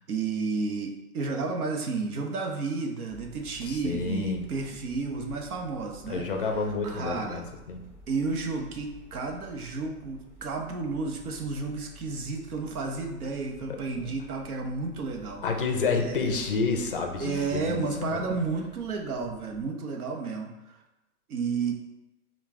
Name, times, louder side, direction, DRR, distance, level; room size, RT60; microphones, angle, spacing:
voice 1, 0.0-6.3 6.8-7.4 8.1-15.4 16.0-16.3 17.2-20.8 21.3-21.7, right 4 dB, 70° right, 2 dB, 1.0 m, -32 dB
sound 1, 3.1-19.7, right 1 dB, 15° right, 1.0 m, -52 dB
voice 2, 3.6-4.5 6.1-7.8 13.9-14.1 15.4-18.4, left 4 dB, 40° left, 4 dB, 0.5 m, -29 dB
5.2 x 2.4 x 3.6 m, 0.98 s
hypercardioid pair, 160°, 46 cm